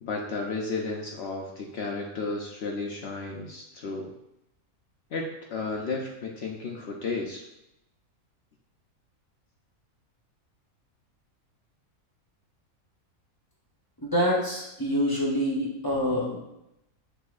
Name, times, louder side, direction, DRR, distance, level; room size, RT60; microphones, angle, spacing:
voice 1, 0.0-4.1 5.1-7.4, left 3 dB, 65° left, 0 dB, 0.7 m, -33 dB
voice 2, 14.0-16.4, equal, 20° left, -4 dB, 0.6 m, -26 dB
6.4 x 2.7 x 2.4 m, 0.86 s
omnidirectional pair, 1.4 m